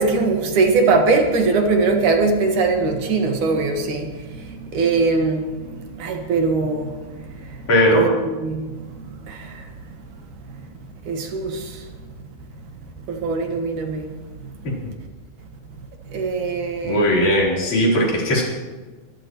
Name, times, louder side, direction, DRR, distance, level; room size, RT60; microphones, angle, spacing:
voice 1, 0.0-7.6 7.9-9.6 10.5-10.6 11.1-11.8 13.1-14.1 16.1-17.1, right 3 dB, 70° right, 3 dB, 3.1 m, -22 dB
voice 2, 7.7-8.1 16.8-18.4, equal, 60° left, -3 dB, 5.2 m, -18 dB
24.0 x 15.0 x 3.1 m, 1.3 s
omnidirectional pair, 3.7 m